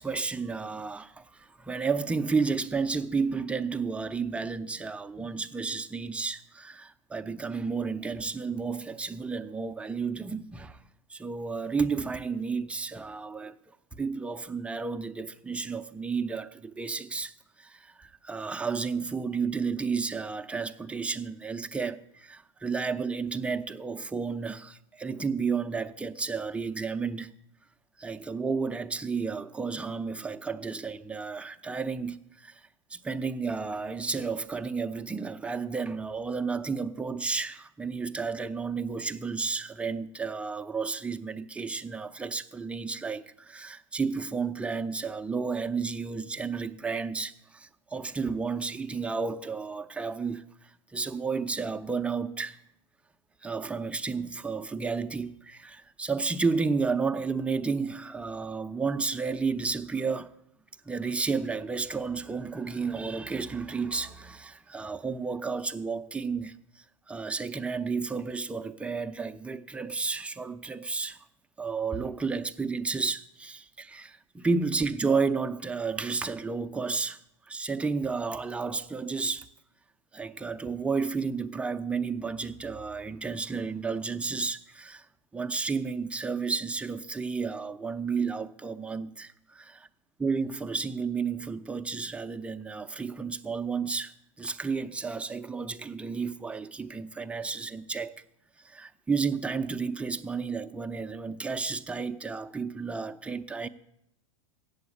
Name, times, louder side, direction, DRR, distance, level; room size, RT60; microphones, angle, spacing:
voice 1, 0.0-10.8 11.1-13.6 13.9-27.3 28.0-52.6 53.4-60.3 60.9-71.2 71.6-77.2 77.5-79.5 80.1-85.1 85.3-89.9 90.2-98.2 98.6-103.7, right 4 dB, 5° right, 0.5 m, -32 dB
7.9 x 7.7 x 8.3 m
figure-of-eight pair, 90°, 16 cm